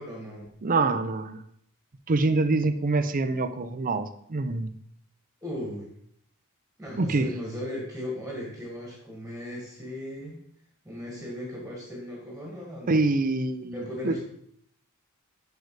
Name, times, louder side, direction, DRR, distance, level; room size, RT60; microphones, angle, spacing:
voice 1, 0.0-0.5 5.4-5.9 6.8-10.4 10.9-13.0 13.7-14.2, left 1 dB, 5° right, -2 dB, 1.7 m, -37 dB
voice 2, 0.6-1.4 2.1-4.7 7.0-7.3 12.9-14.1, right 3 dB, 40° right, 10 dB, 0.6 m, -25 dB
6.6 x 6.4 x 4.7 m, 0.68 s
head